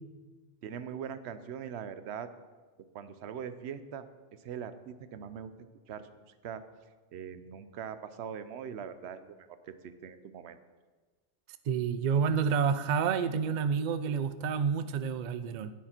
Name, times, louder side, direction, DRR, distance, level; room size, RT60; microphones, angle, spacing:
voice 1, 0.6-2.3 2.9-4.1 4.4-5.5 5.9-6.1 6.4-6.6 7.1-10.6, right 8 dB, 70° right, 11 dB, 0.9 m, -41 dB
voice 2, 11.7-15.7, right 6 dB, 55° right, 12 dB, 0.5 m, -29 dB
10.0 x 9.4 x 4.4 m, 1.3 s
omnidirectional pair, 1.2 m